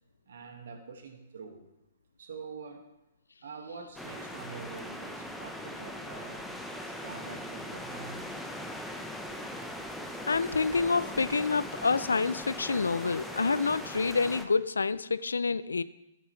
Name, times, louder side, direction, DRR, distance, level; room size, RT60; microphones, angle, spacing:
voice 1, 0.3-1.7 2.2-2.9 3.4-6.5 7.0-8.2, right 5 dB, 65° right, 5 dB, 1.8 m, -45 dB
sound 1, 4.0-14.5, left 1 dB, ahead, 1.0 m, -40 dB
voice 2, 10.3-15.8, left 4 dB, 80° left, 17 dB, 0.4 m, -28 dB
13.0 x 10.0 x 3.2 m, 0.87 s
figure-of-eight pair, 120°, 0 cm